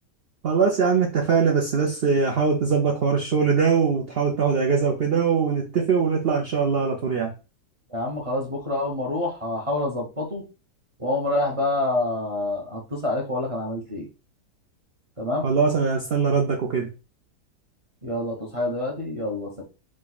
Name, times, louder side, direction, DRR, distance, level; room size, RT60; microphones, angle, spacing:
voice 1, 0.4-7.3 15.4-16.9, right 5 dB, 65° right, 0.6 m, -22 dB
voice 2, 7.9-10.4 11.0-14.1 15.2-15.5 18.0-19.6, left 2 dB, 30° right, 0.7 m, -27 dB
5.0 x 2.3 x 4.0 m
omnidirectional pair, 1.8 m